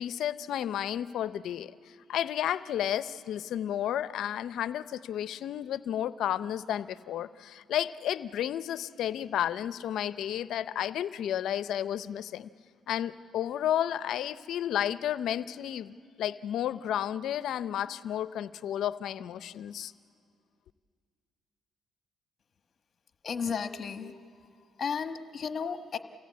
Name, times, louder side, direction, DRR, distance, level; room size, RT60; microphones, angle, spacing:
voice 1, 0.0-12.5 12.9-19.9, left 10 dB, 75° left, 15 dB, 0.6 m, -32 dB
voice 2, 23.2-24.1 24.8-26.0, left 6 dB, 45° left, 8 dB, 1.2 m, -33 dB
28.0 x 16.5 x 8.5 m, 2.2 s
cardioid pair, 90°, 0 cm